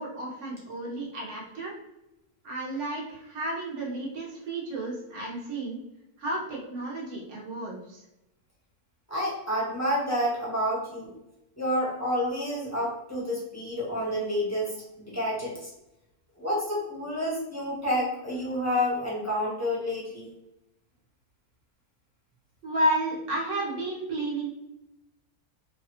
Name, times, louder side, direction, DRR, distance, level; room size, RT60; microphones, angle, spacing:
voice 1, 0.0-1.7 2.4-5.8 6.2-8.0 22.6-24.5, right 1 dB, 55° right, -3 dB, 1.2 m, -32 dB
voice 2, 9.1-11.1 11.6-15.7 16.4-20.3, equal, 15° left, -6 dB, 0.7 m, -29 dB
3.2 x 2.3 x 2.8 m, 0.89 s
omnidirectional pair, 1.6 m